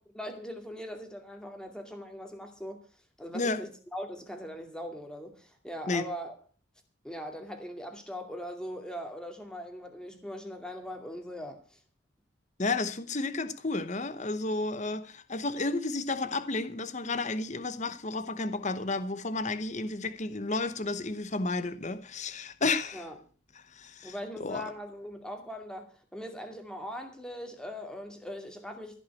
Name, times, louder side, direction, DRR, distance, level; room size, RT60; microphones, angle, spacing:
voice 1, 0.1-2.9 3.2-6.4 7.0-11.8 22.9-23.2 24.0-29.0, equal, 5° left, 2.4 m, -40 dB
voice 2, 12.6-23.1 23.6-24.1 24.4-24.7, left 3 dB, 35° left, 0.9 m, -32 dB
15.5 x 6.0 x 8.4 m
head